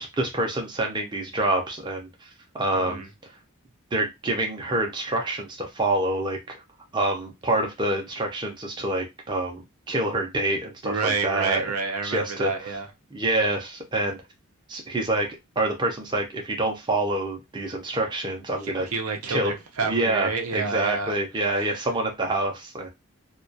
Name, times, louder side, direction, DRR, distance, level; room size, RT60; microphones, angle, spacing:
voice 1, 0.0-2.3 2.5-3.0 3.9-6.6 6.9-9.6 9.9-11.6 12.0-12.5 13.1-14.2 14.7-15.3 15.6-18.9 19.3-19.5 19.8-22.9, right 2 dB, 20° right, 0.4 m, -26 dB
voice 2, 2.7-3.1 10.8-12.9 18.6-21.1 21.5-21.8, right 4 dB, 85° right, 0.6 m, -29 dB
2.2 x 2.2 x 2.6 m
head